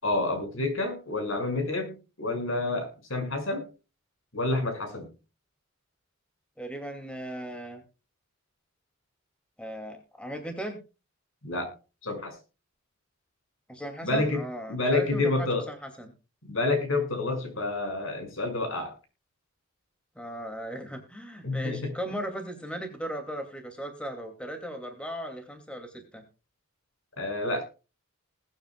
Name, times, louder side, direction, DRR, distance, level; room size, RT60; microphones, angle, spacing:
voice 1, 0.0-3.6 4.3-5.1 11.4-11.7 12.0-12.4 14.0-14.4 14.7-15.6 16.4-18.9 21.4-21.9 27.2-27.6, left 2 dB, 70° left, 5 dB, 6.1 m, -28 dB
voice 2, 6.6-7.8 9.6-10.8 13.7-16.1 20.2-26.2, equal, 5° left, 5 dB, 2.5 m, -37 dB
21.0 x 9.3 x 2.3 m, 0.31 s
head